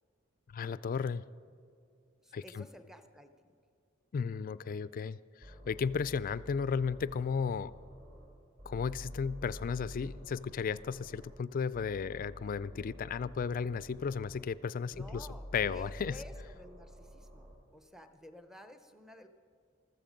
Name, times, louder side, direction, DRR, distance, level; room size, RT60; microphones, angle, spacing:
voice 1, 0.5-1.2 2.3-2.7 4.1-7.7 8.7-15.3 15.5-16.2, left 6 dB, 40° left, 17 dB, 0.3 m, -34 dB
voice 2, 2.2-3.5 14.9-19.3, left 1 dB, ahead, 7 dB, 0.7 m, -52 dB
sound 1, 5.4-8.3 8.6-11.4 11.7-14.4 14.9-17.5, equal, 35° right, 3.0 m, -49 dB
14.5 x 14.0 x 5.2 m, 2.4 s
head